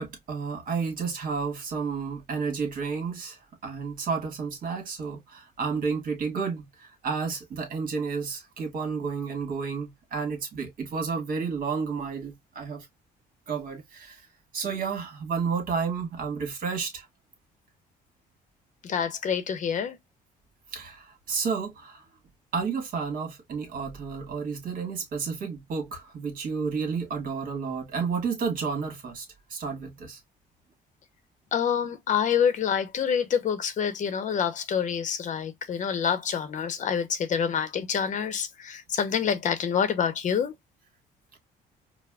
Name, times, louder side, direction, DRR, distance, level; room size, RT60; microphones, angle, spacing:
voice 1, 0.0-3.4 3.6-12.9 13.5-14.2 14.5-17.1 20.7-22.0 22.5-29.2 29.5-30.2, right 5 dB, 55° right, 1.6 m, -31 dB
voice 2, 18.8-20.0 31.5-40.5, left 7 dB, 45° left, 0.8 m, -27 dB
4.7 x 2.1 x 2.2 m
cardioid pair, 110°, 17 cm